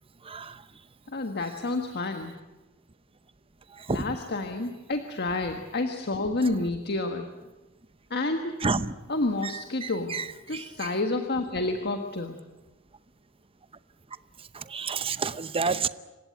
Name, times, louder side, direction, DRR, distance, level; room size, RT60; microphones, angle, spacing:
voice 1, 0.2-0.6 3.8-4.2 8.6-8.9 9.4-11.0 14.5-15.9, right 4 dB, 25° right, 14 dB, 0.7 m, -30 dB
voice 2, 1.1-2.3 3.9-7.3 8.1-8.6 9.1-10.2 10.5-12.4, left 2 dB, 50° left, 5 dB, 1.5 m, -29 dB
27.5 x 16.5 x 9.4 m, 1.1 s
head